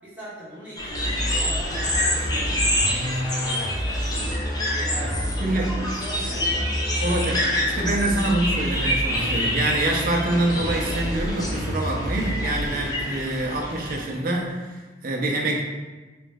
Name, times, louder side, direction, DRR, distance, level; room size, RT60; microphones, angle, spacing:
voice 1, 0.0-4.0 4.7-5.7 6.0-6.8, equal, 10° right, -11 dB, 1.3 m, -40 dB
sound 1, 0.8-14.0, left 1 dB, 20° left, 0.7 m, -28 dB
sound 2, 0.9-12.8, equal, 65° left, 0.8 m, -29 dB
voice 2, 5.4-5.7 7.0-7.5 7.7-15.6, right 2 dB, 50° right, 0 dB, 0.6 m, -25 dB
3.2 x 3.0 x 3.4 m, 1.2 s
head